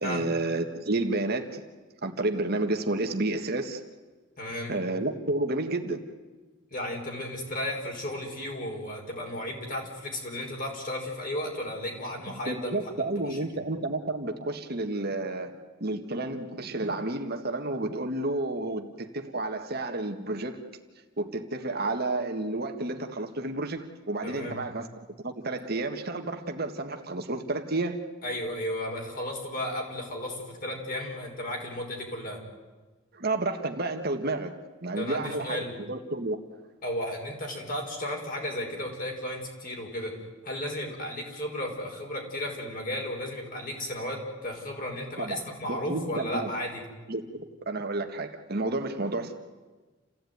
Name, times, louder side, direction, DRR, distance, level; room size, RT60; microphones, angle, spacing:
voice 1, 0.0-1.6 2.0-3.8 4.7-6.1 12.5-20.6 21.2-24.9 25.2-28.0 33.1-34.5 34.8-36.4 45.2-45.4 45.7-46.5 47.1-49.4, right 2 dB, 50° right, 5 dB, 1.6 m, -31 dB
voice 2, 4.4-4.8 6.7-12.9 13.2-13.4 24.2-24.7 28.2-32.4 35.0-35.8 36.8-46.8, left 1 dB, 40° left, 1 dB, 5.5 m, -34 dB
29.0 x 16.0 x 9.5 m, 1.3 s
head